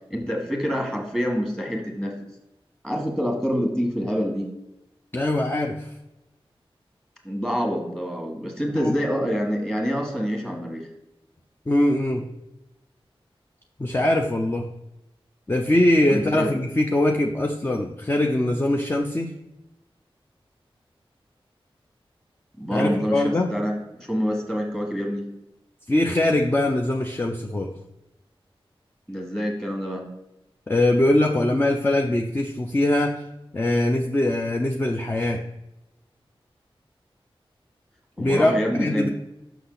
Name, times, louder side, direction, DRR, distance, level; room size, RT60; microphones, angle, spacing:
voice 1, 0.1-2.2 2.8-4.5 7.2-10.9 16.1-16.5 22.6-25.3 29.1-30.1 38.2-39.1, equal, 5° left, 2 dB, 1.6 m, -26 dB
voice 2, 5.1-5.9 8.7-9.0 11.7-12.2 13.8-14.7 15.5-19.3 22.7-23.5 25.9-27.7 30.7-33.3 33.5-35.4 38.2-39.1, left 1 dB, 25° left, 3 dB, 0.5 m, -22 dB
6.1 x 5.7 x 3.9 m, 0.92 s
wide cardioid pair, 90°, 10 cm